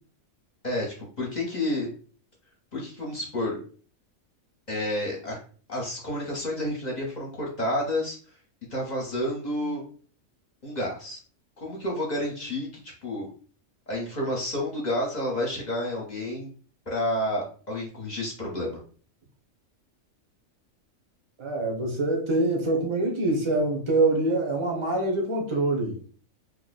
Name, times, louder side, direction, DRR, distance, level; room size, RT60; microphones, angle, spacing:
voice 1, 0.6-1.9 2.7-3.6 4.7-5.4 5.7-8.2 8.7-9.8 10.6-11.2 11.6-13.3 13.9-16.5 16.9-18.8, left 1 dB, 35° left, -2 dB, 0.9 m, -30 dB
voice 2, 21.4-26.0, right 2 dB, 30° right, 1 dB, 0.6 m, -25 dB
3.0 x 2.2 x 4.0 m, 0.42 s
omnidirectional pair, 1.4 m